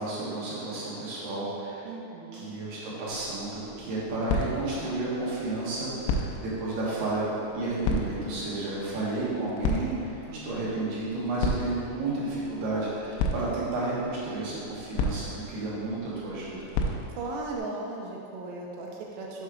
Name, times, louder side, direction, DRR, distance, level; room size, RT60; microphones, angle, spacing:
voice 1, 0.0-1.9 2.3-7.3 7.5-16.7, right 2 dB, 65° right, -8 dB, 2.3 m, -32 dB
voice 2, 1.9-2.6 10.3-10.8 17.1-19.4, right 2 dB, 80° right, -1 dB, 2.5 m, -37 dB
sound 1, 3.1-17.6, left 2 dB, 85° left, 3.0 m, -35 dB
6.9 x 4.3 x 4.9 m, 2.8 s
omnidirectional pair, 5.4 m